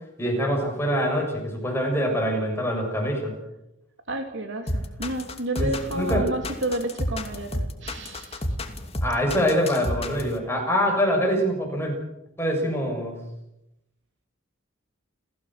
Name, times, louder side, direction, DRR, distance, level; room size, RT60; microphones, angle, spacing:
voice 1, 0.2-3.3 5.6-6.3 9.0-12.0 12.4-13.2, equal, 10° left, 1 dB, 7.0 m, -24 dB
voice 2, 4.1-8.4, right 1 dB, 60° right, 5 dB, 3.1 m, -31 dB
sound 1, 4.7-10.3, left 1 dB, 30° left, 2.5 m, -29 dB
29.0 x 16.0 x 7.7 m, 0.87 s
head